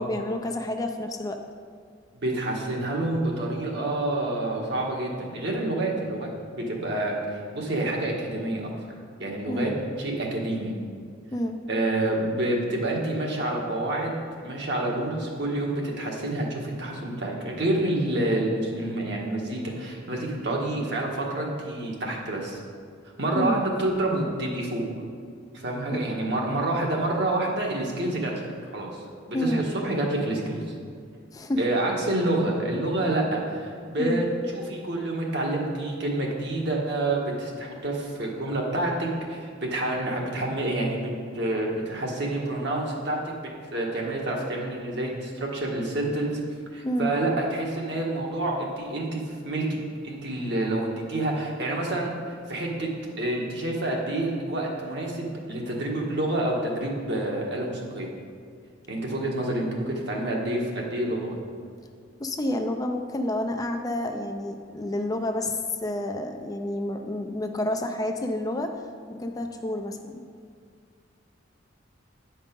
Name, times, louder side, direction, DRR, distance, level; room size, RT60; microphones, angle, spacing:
voice 1, 0.0-1.4 9.5-9.7 11.3-11.6 23.3-23.6 26.1-26.2 29.3-29.7 31.3-31.6 34.0-34.2 46.8-47.1 62.2-68.8 69.1-70.2, left 1 dB, 20° left, 4 dB, 0.4 m, -29 dB
voice 2, 2.1-7.2 7.5-8.7 9.2-9.7 10.0-10.7 11.7-22.6 23.2-24.8 25.5-28.3 28.7-29.0 29.3-30.6 31.6-34.2 34.5-43.2 43.7-46.4 46.7-49.8 50.0-52.9 53.2-58.1 58.9-61.4, right 1 dB, 60° right, -2 dB, 1.5 m, -28 dB
9.4 x 5.3 x 5.2 m, 2.1 s
head